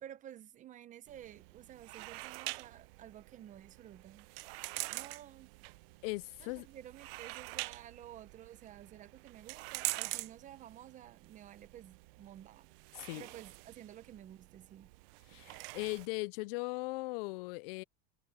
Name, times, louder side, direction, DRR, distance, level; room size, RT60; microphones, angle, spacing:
voice 1, 0.0-4.3 4.9-5.5 6.4-12.7 13.1-14.9, right 11 dB, 25° right, 0.7 m, -52 dB
sound 1, 1.1-16.1, right 24 dB, 55° right, 0.7 m, -45 dB
voice 2, 6.0-6.7 12.9-13.3 15.3-17.8, left 24 dB, 55° left, 0.5 m, -39 dB
supercardioid pair, 155°, 34 cm